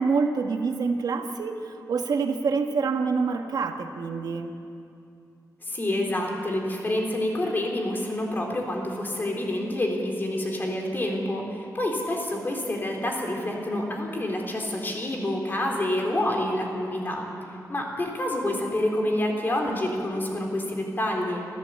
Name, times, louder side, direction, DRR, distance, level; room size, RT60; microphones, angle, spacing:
voice 1, 0.0-4.6, right 4 dB, 80° right, 5 dB, 1.5 m, -26 dB
voice 2, 5.7-17.3 17.7-21.4, left 1 dB, 30° left, 0 dB, 3.7 m, -28 dB
27.0 x 14.0 x 8.5 m, 2.6 s
wide cardioid pair, 150°, 7 cm